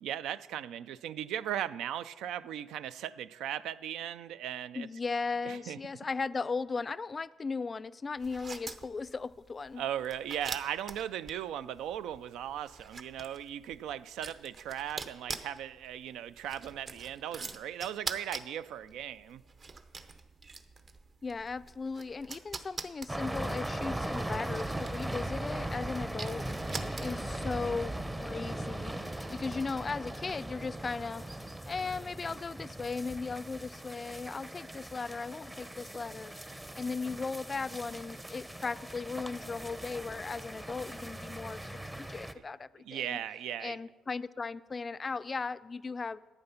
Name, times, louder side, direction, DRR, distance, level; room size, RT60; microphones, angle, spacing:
voice 1, 0.0-4.9 5.4-5.8 9.8-19.4 42.8-43.8, right 10 dB, 85° right, 15 dB, 0.3 m, -38 dB
voice 2, 4.7-9.8 21.2-26.5 27.0-31.3 31.7-43.2 43.6-46.2, left 4 dB, 30° left, 16 dB, 0.3 m, -37 dB
sound 1, 8.2-27.4, right 4 dB, 45° right, 0.8 m, -45 dB
sound 2, 23.1-42.3, right 1 dB, 10° right, 0.6 m, -39 dB
11.5 x 8.8 x 5.6 m, 1.3 s
cardioid pair, 90°, 0 cm